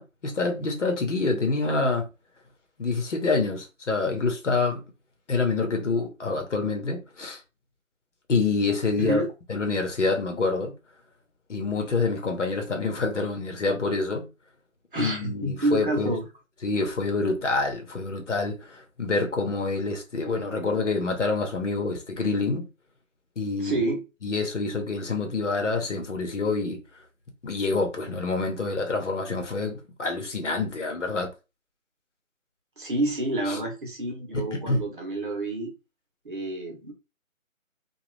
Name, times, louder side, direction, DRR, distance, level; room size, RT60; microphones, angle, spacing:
voice 1, 0.0-2.1 2.8-4.8 5.3-7.4 8.3-9.2 9.5-10.7 11.5-14.3 15.0-16.2 16.6-22.7 23.4-23.8 24.2-26.8 27.4-31.3 33.5-33.6 34.3-34.8, left 3 dB, 60° left, 1.0 m, -27 dB
voice 2, 14.9-16.3 23.6-24.0 32.8-35.7 36.2-36.9, right 2 dB, 40° right, 0.9 m, -28 dB
2.9 x 2.4 x 3.2 m
figure-of-eight pair, 160°, 41 cm